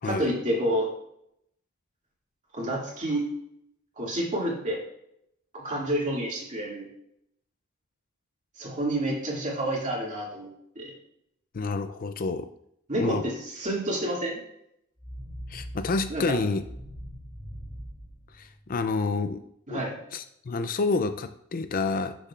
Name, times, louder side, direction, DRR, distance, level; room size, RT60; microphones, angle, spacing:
voice 1, 0.0-0.9 2.5-3.2 4.0-4.8 5.5-6.9 8.6-10.5 10.8-10.9 12.9-14.4 16.1-16.2 19.7-20.0, right 1 dB, 35° right, -3 dB, 2.3 m, -29 dB
voice 2, 11.5-12.5 13.0-13.2 15.5-16.6 18.3-19.4 19.7-19.8 20.1-22.2, left 3 dB, 40° left, 9 dB, 0.4 m, -28 dB
sound 1, 15.0-19.0, equal, 15° right, 2.8 m, -42 dB
11.5 x 6.7 x 2.5 m, 0.74 s
head